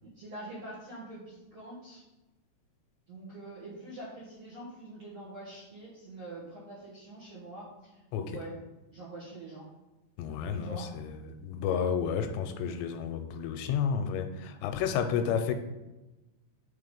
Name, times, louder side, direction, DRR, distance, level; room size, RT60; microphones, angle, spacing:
voice 1, 0.0-2.0 3.1-8.5 8.9-9.6 10.5-10.9, right 2 dB, 60° right, -8 dB, 1.7 m, -45 dB
voice 2, 10.2-15.5, left 7 dB, 85° left, 8 dB, 2.8 m, -31 dB
6.5 x 3.8 x 5.2 m, 1.1 s
omnidirectional pair, 5.0 m